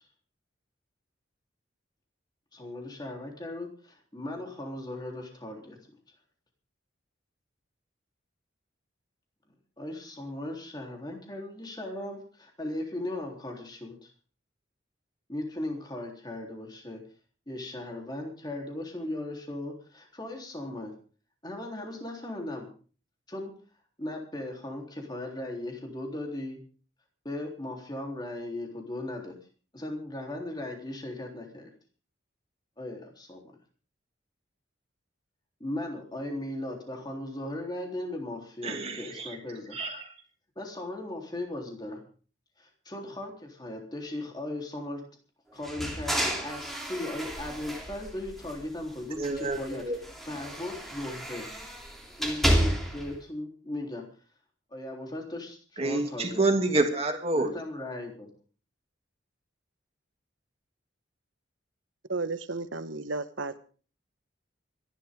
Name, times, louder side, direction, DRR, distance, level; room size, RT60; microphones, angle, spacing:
voice 1, 2.5-5.8 9.8-14.1 15.3-17.0 17.5-20.9 21.4-22.7 23.3-23.5 24.0-26.6 27.2-29.4 29.7-31.7 32.8-33.6 35.6-39.8 40.6-42.0 42.6-45.0 45.5-51.5 52.2-54.1 54.7-56.4 57.3-58.3, left 1 dB, 20° left, 1 dB, 3.6 m, -37 dB
voice 2, 38.6-39.4 39.7-40.1 49.2-50.0 55.8-57.5, right 2 dB, 30° right, 3 dB, 2.8 m, -28 dB
sound 1, 45.6-48.8 49.2-53.1, equal, ahead, 3.2 m, -31 dB
voice 3, 62.1-63.6, right 3 dB, 80° right, 12 dB, 1.3 m, -33 dB
25.5 x 11.5 x 3.7 m, 0.40 s
head